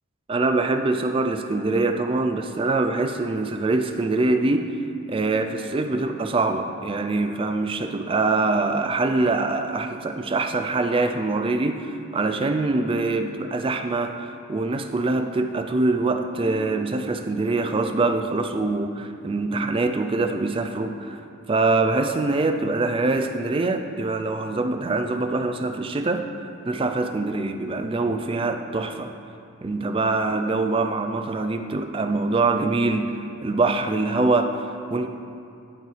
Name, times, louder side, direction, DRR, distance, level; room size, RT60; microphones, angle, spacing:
voice 1, 0.3-4.8 5.1-21.2 21.5-26.2 26.7-29.1 29.6-35.1, right 3 dB, 25° right, 6 dB, 0.3 m, -24 dB
13.0 x 5.4 x 3.2 m, 2.6 s
head